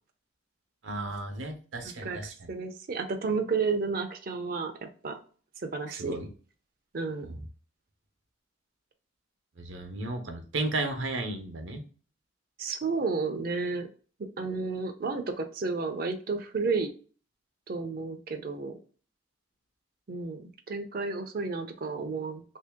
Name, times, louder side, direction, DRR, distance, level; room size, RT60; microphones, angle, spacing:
voice 1, 0.8-2.5 5.9-6.3 7.3-7.4 9.6-11.8, right 2 dB, 80° right, 5 dB, 0.8 m, -34 dB
voice 2, 1.8-2.2 2.5-5.2 5.6-6.2 6.9-7.3 12.6-13.9 14.4-16.9 17.7-18.7 20.1-22.4, right 4 dB, 50° right, 6 dB, 0.5 m, -32 dB
3.0 x 2.7 x 3.4 m, 0.40 s
head